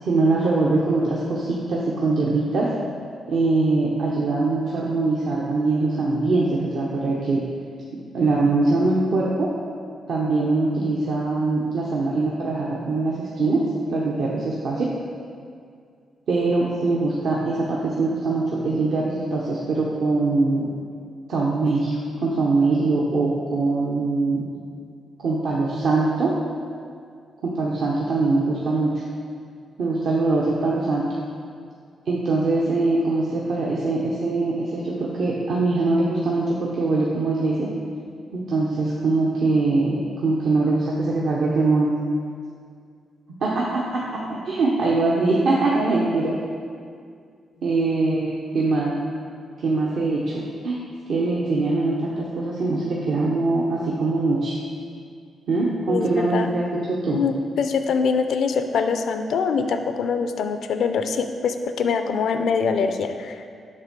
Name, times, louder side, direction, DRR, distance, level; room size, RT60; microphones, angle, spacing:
voice 1, 0.0-2.7 3.3-7.4 8.1-9.5 10.1-14.9 16.3-20.7 21.3-24.4 25.2-26.3 27.4-29.0 29.8-31.2 32.1-37.7 38.3-41.9 43.4-46.4 47.6-48.9 49.6-50.8 51.1-54.6 55.5-56.7 57.0-57.2, right 3 dB, 75° right, -4 dB, 0.8 m, -22 dB
voice 2, 55.9-56.5 57.1-63.5, left 5 dB, 75° left, 8 dB, 0.4 m, -24 dB
6.6 x 3.6 x 6.0 m, 2.2 s
cardioid pair, 80°, 0 cm